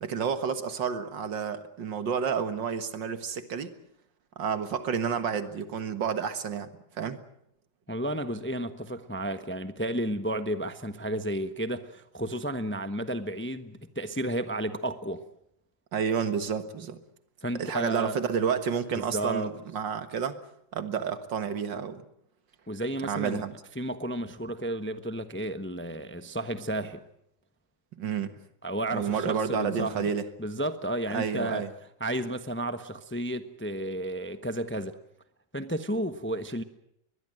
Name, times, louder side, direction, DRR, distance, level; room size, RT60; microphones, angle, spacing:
voice 1, 0.0-3.7 4.4-6.7 6.9-7.2 15.9-17.0 17.6-20.4 20.7-22.1 23.0-23.5 28.0-28.3 28.9-30.2 31.1-31.7, right 7 dB, 75° right, 2.2 m, -30 dB
voice 2, 7.9-15.2 17.4-18.2 18.9-19.5 22.7-23.4 23.7-27.0 28.6-30.1 30.4-31.6 32.0-35.0 35.5-36.6, right 1 dB, 10° left, 0.8 m, -32 dB
23.0 x 21.0 x 7.7 m
omnidirectional pair, 2.0 m